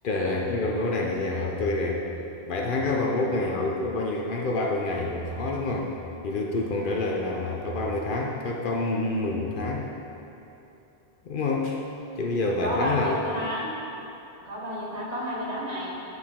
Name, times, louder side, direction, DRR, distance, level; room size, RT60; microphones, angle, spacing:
voice 1, 0.0-2.0 2.5-5.9 6.2-9.9 11.2-11.8 12.2-13.2, left 2 dB, 60° left, 0 dB, 0.7 m, -27 dB
voice 2, 12.6-13.7 14.4-15.9, equal, 40° right, -5 dB, 1.3 m, -30 dB
9.3 x 4.8 x 3.6 m, 2.9 s
omnidirectional pair, 1.0 m